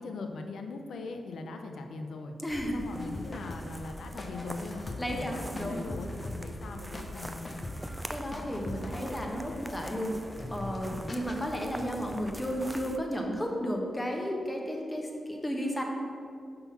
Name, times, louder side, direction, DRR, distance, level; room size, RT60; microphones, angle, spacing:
voice 1, 0.0-2.3 2.7-7.7 10.9-11.2, left 3 dB, 80° left, 5 dB, 0.5 m, -40 dB
voice 2, 2.4-2.8 5.0-5.8 8.1-10.2 10.5-15.8, equal, 20° left, 0 dB, 1.3 m, -33 dB
sound 1, 2.5-13.0, equal, 10° right, 0.4 m, -44 dB
sound 2, 2.9-10.8 11.1-11.5 11.8-12.2, left 1 dB, 40° left, 0.8 m, -42 dB
5.8 x 3.8 x 5.7 m, 2.4 s
supercardioid pair, 45°, 0 cm